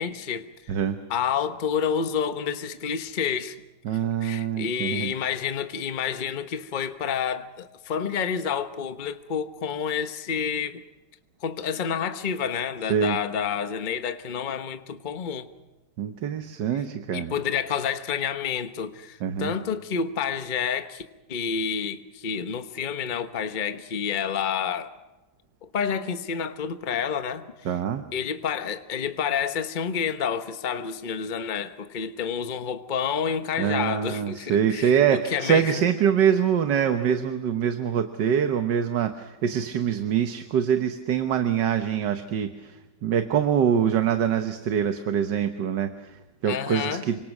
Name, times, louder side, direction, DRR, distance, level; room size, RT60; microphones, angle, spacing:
voice 1, 0.0-0.7 1.1-3.6 4.2-10.8 11.4-15.5 17.1-21.0 21.3-24.9 25.6-27.4 28.1-35.8 46.4-47.1, left 7 dB, 35° left, 1.0 m, -29 dB
voice 2, 3.9-5.1 12.9-13.2 16.0-17.3 19.2-19.5 27.7-28.0 33.6-47.2, right 8 dB, 80° right, 1.7 m, -24 dB
28.0 x 24.5 x 6.0 m
omnidirectional pair, 1.9 m